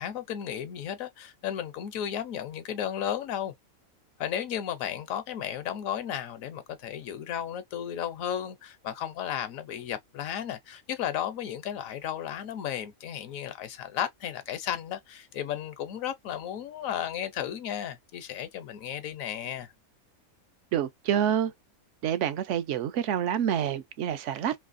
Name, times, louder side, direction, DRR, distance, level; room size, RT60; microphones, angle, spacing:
voice 1, 0.0-3.5 4.2-19.7, left 10 dB, 70° left, 0.9 m, -34 dB
voice 2, 20.7-21.5 22.0-24.5, right 9 dB, 65° right, 0.8 m, -27 dB
3.2 x 2.7 x 2.4 m
omnidirectional pair, 1.5 m